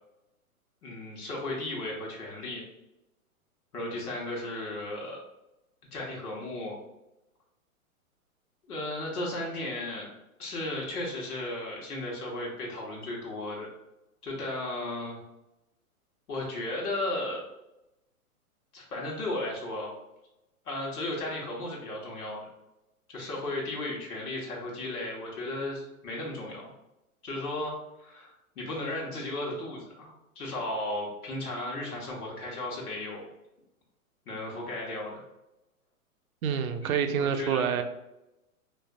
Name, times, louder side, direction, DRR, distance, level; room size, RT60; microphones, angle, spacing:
voice 1, 0.8-2.6 3.7-5.2 5.9-6.8 8.7-10.1 10.4-13.7 14.2-15.2 16.3-17.4 18.7-19.9 20.6-22.5 23.1-26.6 27.2-33.3 34.3-35.2 36.8-37.7, left 1 dB, 80° left, -3 dB, 1.4 m, -35 dB
voice 2, 36.4-37.8, right 7 dB, 70° right, 8 dB, 0.6 m, -27 dB
4.1 x 2.6 x 2.4 m, 0.91 s
hypercardioid pair, 125°, 44 cm